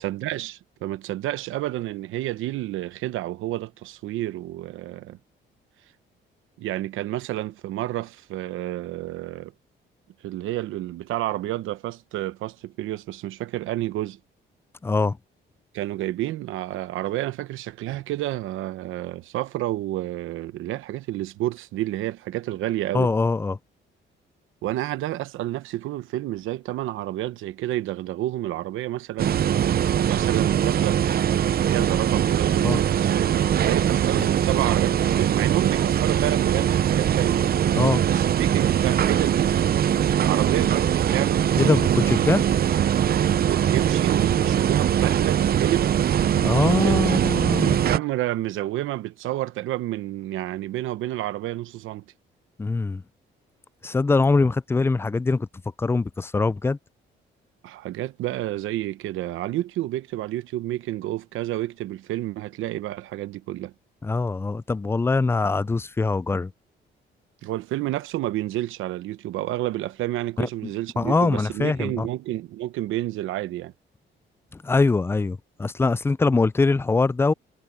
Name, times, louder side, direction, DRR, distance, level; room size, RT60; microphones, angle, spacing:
voice 1, 0.0-5.2 6.6-9.5 10.2-14.2 15.7-23.1 24.6-31.0 31.6-39.5 40.2-41.4 43.5-45.9 46.5-47.2 47.6-52.0 57.6-63.7 67.4-73.7, right 15 dB, 85° right, 0.9 m, -30 dB
voice 2, 14.8-15.2 22.9-23.6 32.6-32.8 34.2-34.3 37.7-38.1 41.6-42.4 46.4-47.8 52.6-53.0 53.8-55.5 55.8-56.8 64.0-66.5 70.4-70.5 71.0-72.1 74.5-77.3, left 3 dB, 10° left, 0.3 m, -23 dB
sound 1, 29.2-48.0, right 9 dB, 50° right, 0.7 m, -21 dB
cardioid pair, 90°, 20 cm